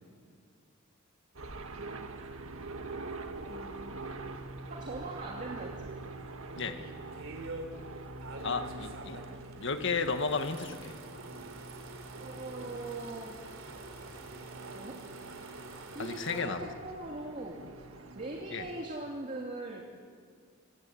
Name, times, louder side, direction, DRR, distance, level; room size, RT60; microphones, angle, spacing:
sound 1, 1.3-18.9, right 3 dB, 90° right, 1.7 m, -45 dB
voice 1, 3.4-4.0 4.6-6.0 12.2-13.4 14.7-15.0 15.9-17.7 18.1-19.8, right 2 dB, 40° right, 0 dB, 2.6 m, -41 dB
sound 2, 6.5-7.7 8.2-16.4, right 2 dB, 75° right, 3.7 m, -47 dB
voice 2, 8.4-9.2 9.6-10.9 16.0-16.6 18.5-18.6, left 4 dB, 65° left, 7 dB, 1.6 m, -33 dB
26.0 x 23.5 x 8.6 m, 2.1 s
head